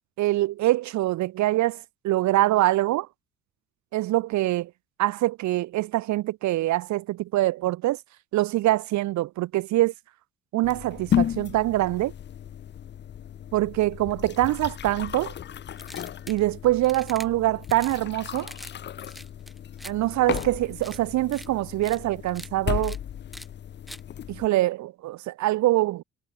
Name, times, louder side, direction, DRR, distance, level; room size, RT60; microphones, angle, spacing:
voice 1, 0.2-3.1 3.9-4.7 5.0-8.0 8.3-9.9 10.5-12.1 13.5-15.3 16.3-18.5 19.8-23.0 24.3-26.0, right 16 dB, 50° right, 0.8 m, -24 dB
sound 1, 10.6-24.5, left 10 dB, 30° left, 0.6 m, -34 dB
sound 2, 15.8-16.4 16.8-17.3 17.6-18.0 18.3-18.7 19.0-19.9 20.3-20.5 20.8-21.0 21.3-21.5 21.8-22.0 22.3-22.5 22.8-23.0 23.3-23.5 23.9-24.0, equal, ahead, 2.1 m, -43 dB
figure-of-eight pair, 55°, 38 cm